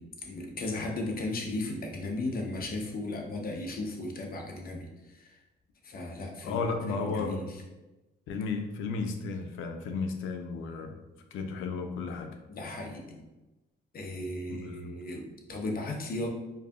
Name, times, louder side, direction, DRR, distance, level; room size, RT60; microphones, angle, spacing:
voice 1, 0.0-5.4 5.8-7.6 12.5-13.2 13.9-16.3, left 2 dB, 50° left, 1 dB, 0.8 m, -36 dB
voice 2, 6.1-7.5 8.3-11.0 11.3-12.3 14.5-14.9, left 4 dB, 90° left, 5 dB, 0.5 m, -34 dB
4.7 x 2.7 x 2.4 m, 1.1 s
cardioid pair, 90°, 20 cm